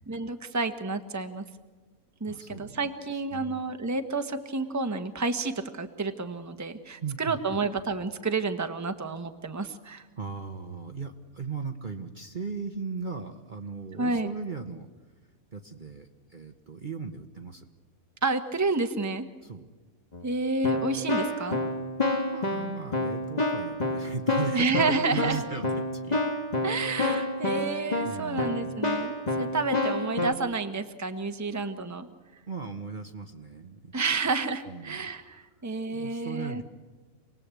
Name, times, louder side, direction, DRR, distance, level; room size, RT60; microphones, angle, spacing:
voice 1, 0.1-1.4 2.2-10.0 14.0-14.3 18.2-19.3 20.2-21.6 24.5-25.4 26.6-32.1 33.9-36.6, right 3 dB, 10° right, 8 dB, 1.2 m, -30 dB
voice 2, 2.3-2.8 3.3-3.6 7.0-7.6 10.2-14.9 15.5-17.6 19.4-19.7 22.1-26.2 28.0-28.9 31.5-31.6 32.5-33.9 34.7-35.1 35.9-36.6, right 5 dB, 35° right, 5 dB, 1.2 m, -37 dB
Keyboard (musical), 20.1-20.3 20.6-30.3, left 2 dB, 30° left, 1.9 m, -29 dB
27.5 x 19.5 x 8.4 m, 1.3 s
omnidirectional pair, 1.6 m